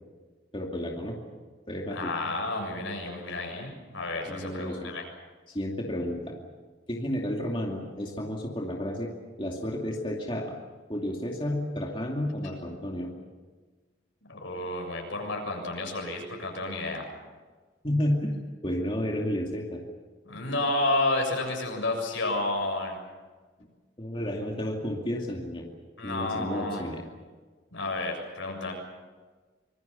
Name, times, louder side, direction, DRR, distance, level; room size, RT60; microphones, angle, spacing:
voice 1, 0.5-1.2 1.7-2.1 4.3-4.9 5.5-6.3 6.9-9.1 9.4-10.5 10.9-13.1 17.8-19.8 24.0-25.6 26.0-27.0, left 1 dB, 25° left, 0 dB, 2.5 m, -31 dB
voice 2, 1.9-5.0 14.3-17.1 20.3-23.0 26.0-26.8 27.7-28.7, left 2 dB, 90° left, 2 dB, 7.2 m, -31 dB
25.5 x 22.0 x 7.0 m, 1.4 s
head